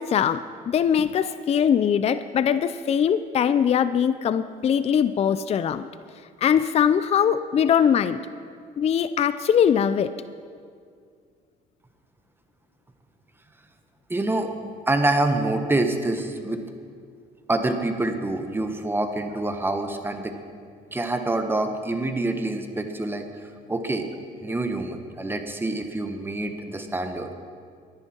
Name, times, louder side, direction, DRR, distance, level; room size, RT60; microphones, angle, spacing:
voice 1, 0.0-5.9 6.4-8.2 8.8-10.1, left 8 dB, 40° left, 13 dB, 0.5 m, -21 dB
voice 2, 14.1-14.5 14.9-16.6 17.5-20.3 20.9-23.2 23.7-24.1 24.4-27.4, right 2 dB, 15° right, 6 dB, 1.3 m, -26 dB
23.0 x 10.5 x 4.5 m, 2.2 s
cardioid pair, 110°, 17 cm